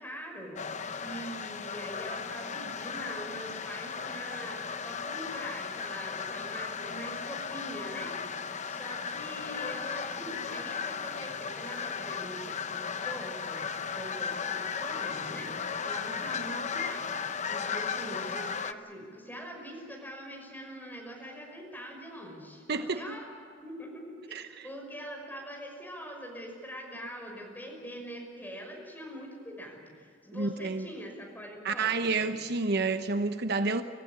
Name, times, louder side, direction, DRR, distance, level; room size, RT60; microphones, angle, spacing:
voice 1, 0.0-23.2 23.6-32.4, equal, 10° left, 0 dB, 5.9 m, -43 dB
sound 1, 0.6-18.7, left 6 dB, 40° left, 0.8 m, -36 dB
voice 2, 22.7-23.0 24.3-24.7 30.3-30.9 31.6-33.8, right 3 dB, 60° right, 8 dB, 1.0 m, -29 dB
26.0 x 15.0 x 10.0 m, 2.3 s
head